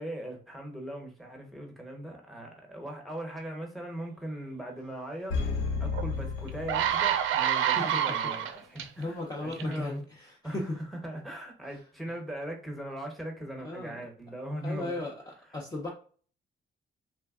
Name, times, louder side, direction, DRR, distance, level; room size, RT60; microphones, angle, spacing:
voice 1, 0.0-10.0 10.4-15.0 15.5-15.6, right 1 dB, ahead, 1 dB, 0.9 m, -39 dB
sound 1, 5.3-7.5 7.8-7.9, left 4 dB, 75° left, 0.6 m, -32 dB
sound 2, 5.9-6.0 6.5-8.8 9.5-9.7, right 10 dB, 80° right, 0.4 m, -27 dB
voice 2, 7.7-8.3 9.0-10.8 13.6-14.0 14.6-15.9, left 2 dB, 20° left, -1 dB, 0.6 m, -36 dB
3.3 x 2.1 x 2.4 m, 0.43 s
cardioid pair, 90°, 20 cm